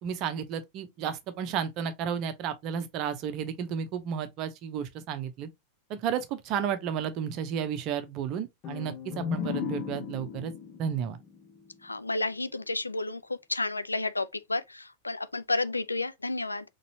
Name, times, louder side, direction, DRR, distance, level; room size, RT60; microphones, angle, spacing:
voice 1, 0.0-5.5 5.9-10.5 10.8-11.2, right 8 dB, 40° right, 0.8 m, -32 dB
sound 1, 8.6-12.3, left 7 dB, 35° left, 0.9 m, -36 dB
voice 2, 11.8-13.2 13.5-16.6, left 2 dB, 80° left, 0.3 m, -31 dB
4.1 x 3.2 x 2.7 m
figure-of-eight pair, 90°, 0 cm